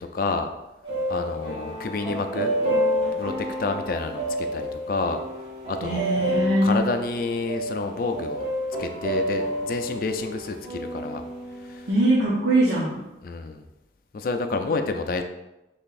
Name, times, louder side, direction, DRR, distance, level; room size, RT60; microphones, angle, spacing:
voice 1, 0.1-0.5 1.1-2.5 3.2-5.2 5.6-6.0 6.6-8.4 8.8-11.2 11.6-11.9 13.2-13.7 14.1-15.2, left 3 dB, 50° left, 6 dB, 0.3 m, -29 dB
sound 1, 0.8-11.9, equal, 30° right, 1.5 m, -29 dB
voice 2, 5.8-6.8 11.9-13.0, right 1 dB, 75° right, -7 dB, 0.9 m, -21 dB
5.7 x 3.4 x 2.5 m, 0.95 s
head